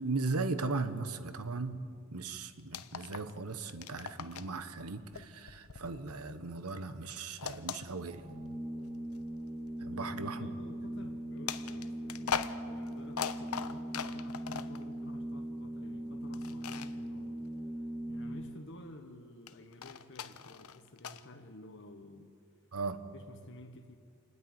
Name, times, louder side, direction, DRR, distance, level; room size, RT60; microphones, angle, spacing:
voice 1, 0.0-1.8 2.1-8.2 9.8-10.5 22.7-23.0, right 3 dB, 85° right, 10 dB, 1.2 m, -37 dB
sound 1, 2.6-3.4 3.6-4.6 5.1-6.6 7.4-8.5 9.1-9.2 11.5-14.8 16.3-16.9 19.5-21.2, left 7 dB, 75° left, 0.7 m, -40 dB
Organ, 8.1-18.8, right 1 dB, 30° right, 3.2 m, -40 dB
voice 2, 9.9-17.4 18.1-22.3 23.1-24.0, left 1 dB, 55° left, 4 dB, 1.2 m, -52 dB
28.0 x 9.6 x 9.8 m, 2.3 s
head